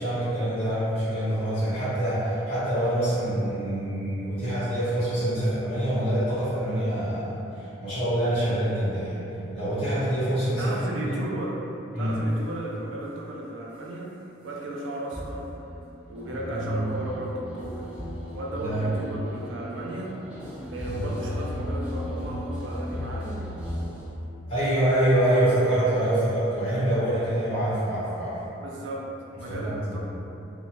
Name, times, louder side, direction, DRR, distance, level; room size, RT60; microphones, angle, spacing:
voice 1, 0.0-11.2 11.9-12.2 16.5-16.9 18.5-19.0 20.8-21.1 24.5-28.4 29.5-30.0, right 1 dB, 30° left, -14 dB, 1.0 m, -26 dB
voice 2, 10.6-11.6 12.0-14.1 14.4-15.5 16.1-17.9 18.4-23.3 25.3-25.5 28.6-29.1 29.3-30.0, right 1 dB, 70° right, -3 dB, 0.4 m, -35 dB
sound 1, 15.1-24.1, equal, 5° right, 0.4 m, -35 dB
2.5 x 2.1 x 2.9 m, 2.9 s
head